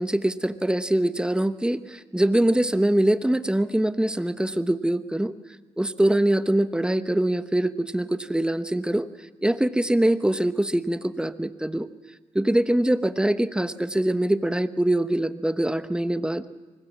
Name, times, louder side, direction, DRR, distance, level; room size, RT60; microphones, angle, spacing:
voice 1, 0.0-5.3 5.8-9.1 9.4-11.9 12.3-16.5, right 1 dB, 5° right, 12 dB, 1.1 m, -23 dB
24.0 x 20.0 x 7.4 m, 1.3 s
cardioid pair, 55°, 12 cm